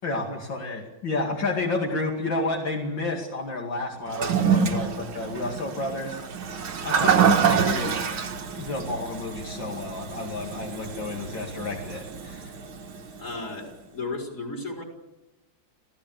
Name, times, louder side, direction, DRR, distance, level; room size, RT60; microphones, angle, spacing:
voice 1, 0.0-6.2 6.8-8.0 8.6-12.5, left 2 dB, 70° left, 0 dB, 3.1 m, -31 dB
Toilet flush, 4.1-13.4, right 6 dB, 90° right, 2.5 m, -26 dB
voice 2, 13.2-14.8, left 3 dB, 40° left, 1 dB, 5.1 m, -34 dB
27.5 x 16.0 x 7.8 m, 1.0 s
omnidirectional pair, 2.2 m